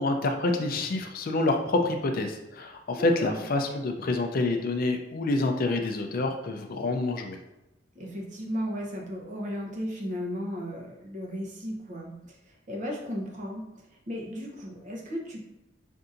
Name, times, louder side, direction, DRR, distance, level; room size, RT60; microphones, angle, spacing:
voice 1, 0.0-7.4, left 2 dB, 50° left, 4 dB, 0.4 m, -27 dB
voice 2, 7.9-13.7 14.1-15.4, equal, 40° right, -1 dB, 0.8 m, -35 dB
5.5 x 2.6 x 2.5 m, 0.95 s
head